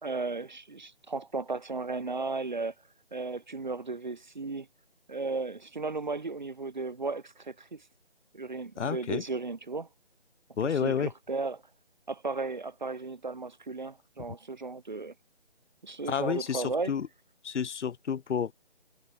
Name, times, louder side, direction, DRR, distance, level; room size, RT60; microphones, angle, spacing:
voice 1, 0.0-2.7 3.1-4.7 5.1-7.8 8.3-9.9 10.6-11.6 12.1-15.1 15.8-16.9, right 3 dB, 45° right, 0.6 m, -35 dB
voice 2, 8.8-9.2 10.6-11.1 16.1-17.1 17.4-18.5, left 7 dB, 85° left, 0.5 m, -30 dB
figure-of-eight pair, 160°, 34 cm